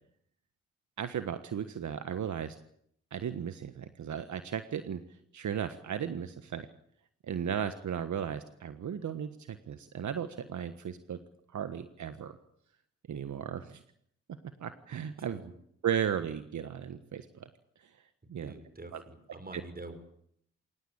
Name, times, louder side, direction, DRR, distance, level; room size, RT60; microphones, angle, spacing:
voice 1, 1.0-2.6 3.1-5.0 5.3-6.7 7.2-11.2 11.5-12.4 13.1-13.8 14.6-15.5 15.8-17.5 17.8-17.9 18.3-18.5 18.9-19.0 19.5-19.6, right 8 dB, 75° right, 10 dB, 1.5 m, -35 dB
voice 2, 18.4-20.0, right 2 dB, 30° right, 9 dB, 6.3 m, -46 dB
24.5 x 18.5 x 8.8 m, 0.68 s
cardioid pair, 60°, 30 cm